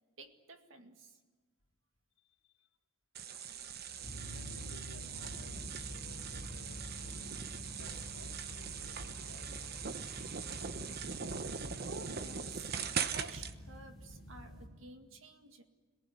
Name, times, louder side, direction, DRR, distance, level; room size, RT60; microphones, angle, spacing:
voice 1, 0.2-1.2 11.9-12.7 13.1-15.6, right 2 dB, 70° right, 6 dB, 2.1 m, -52 dB
voice 2, 2.2-2.7 4.3-7.4 7.8-10.8, left 2 dB, 85° left, -3 dB, 3.9 m, -59 dB
sound 1, 3.1-13.5, right 6 dB, 50° right, 1.0 m, -41 dB
sound 2, 4.0-14.7, equal, ahead, 4.6 m, -48 dB
26.5 x 19.0 x 10.0 m, 1.4 s
head